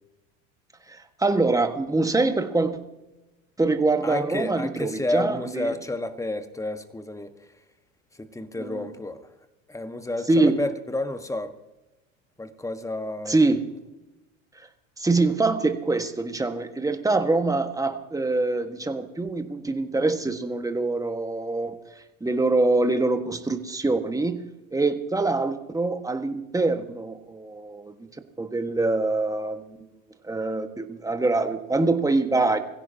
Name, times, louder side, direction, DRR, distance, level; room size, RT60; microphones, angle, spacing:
voice 1, 0.9-2.8 3.6-5.7 8.6-8.8 10.3-10.6 13.2-13.6 15.0-21.8 22.2-24.4 24.7-27.9 28.4-29.8 30.2-32.6, right 3 dB, 10° right, 7 dB, 1.6 m, -24 dB
voice 2, 4.0-7.3 8.2-9.2 9.7-11.5 12.4-13.4, left 2 dB, 10° left, 9 dB, 1.5 m, -30 dB
23.0 x 16.0 x 2.9 m, 1.0 s
hypercardioid pair, 80°, 40 cm